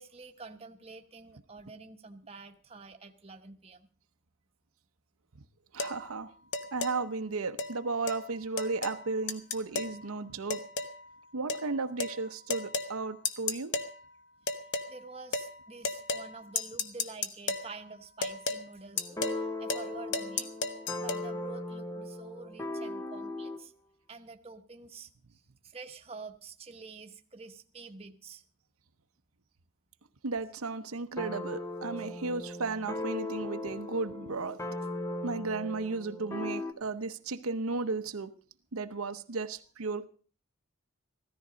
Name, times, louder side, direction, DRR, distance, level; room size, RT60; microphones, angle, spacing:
voice 1, 0.0-3.9 14.9-20.6 21.0-23.7 24.1-28.4, right 4 dB, 25° right, 1.1 m, -48 dB
voice 2, 5.7-6.3 6.7-10.6 11.3-13.8 30.2-34.6 35.2-38.3 38.7-40.1, right 3 dB, 75° right, 0.8 m, -34 dB
sound 1, 5.8-6.0 6.5-7.0 7.6-7.7 8.1-8.2 8.6-9.0 9.3-10.0 10.5-11.0 11.5-11.7 12.0-12.2 12.5-12.9 13.3-13.9 14.5-14.9 15.3-15.5 15.8-16.3 16.6-17.7 18.2-18.6 19.0-19.4 19.7-19.9 20.1-21.2, left 4 dB, 55° left, 1.1 m, -33 dB
sound 2, 19.0-23.7 31.2-36.7, left 1 dB, 15° left, 0.8 m, -38 dB
15.5 x 13.5 x 5.1 m
head